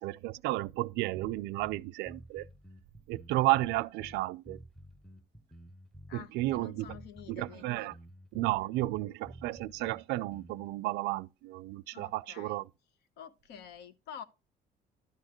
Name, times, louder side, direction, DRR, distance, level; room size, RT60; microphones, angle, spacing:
voice 1, 0.0-2.5 3.1-4.6 6.1-6.9 7.3-7.9 8.3-12.6, right 18 dB, 85° right, 0.4 m, -32 dB
sound 1, 1.1-10.7, equal, 5° left, 0.8 m, -51 dB
voice 2, 6.1-7.9 8.6-8.8 11.9-12.6 13.2-14.2, left 8 dB, 80° left, 1.0 m, -48 dB
12.0 x 6.5 x 3.0 m
cardioid pair, 110°, 17 cm